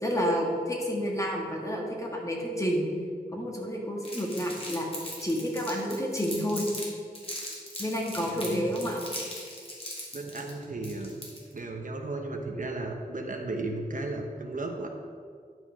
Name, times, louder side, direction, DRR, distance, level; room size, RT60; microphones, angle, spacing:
voice 1, 0.0-2.8 3.3-4.9 5.2-6.7 7.8-9.0, equal, 20° left, -1 dB, 1.9 m, -29 dB
Crumpling crinkling, 4.0-6.9 7.1-11.6, left 1 dB, 35° left, 2.7 m, -39 dB
voice 2, 8.2-8.7 10.1-11.2 11.5-14.9, right 2 dB, 55° right, 2 dB, 1.0 m, -35 dB
11.0 x 5.8 x 5.6 m, 2.1 s
wide cardioid pair, 90°, 16 cm